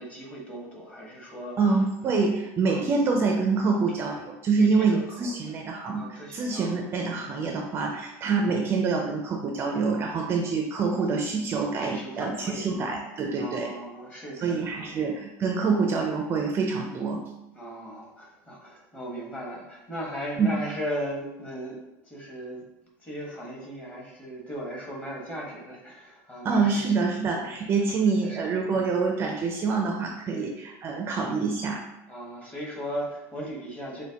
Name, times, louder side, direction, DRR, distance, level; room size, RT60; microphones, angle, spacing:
voice 1, 0.0-1.6 2.1-2.2 2.7-2.9 4.6-5.3 5.9-6.7 10.4-10.5 11.8-12.7 13.3-15.1 17.5-22.6 23.0-26.9 27.4-27.6 28.2-28.4 28.7-28.9 30.3-30.5 32.1-34.0, equal, 15° left, -3 dB, 1.2 m, -37 dB
voice 2, 1.6-6.1 6.3-13.7 14.4-17.2 20.4-20.5 26.4-31.8, right 4 dB, 30° right, 2 dB, 0.4 m, -26 dB
6.2 x 2.2 x 2.8 m, 0.90 s
supercardioid pair, 135°, 8 cm